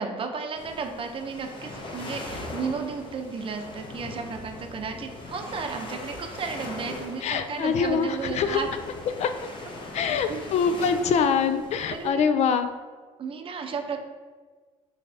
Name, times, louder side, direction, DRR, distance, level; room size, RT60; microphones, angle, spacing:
voice 1, 0.0-8.7 10.0-10.4 11.9-12.3 13.2-14.0, right 5 dB, 40° right, 4 dB, 0.6 m, -33 dB
sound 1, 0.5-12.1, left 2 dB, 35° left, 0.9 m, -40 dB
voice 2, 7.2-8.6 9.2-9.3 9.9-12.7, left 6 dB, 55° left, 9 dB, 0.4 m, -24 dB
5.4 x 3.4 x 2.7 m, 1.4 s
cardioid pair, 95°, 14 cm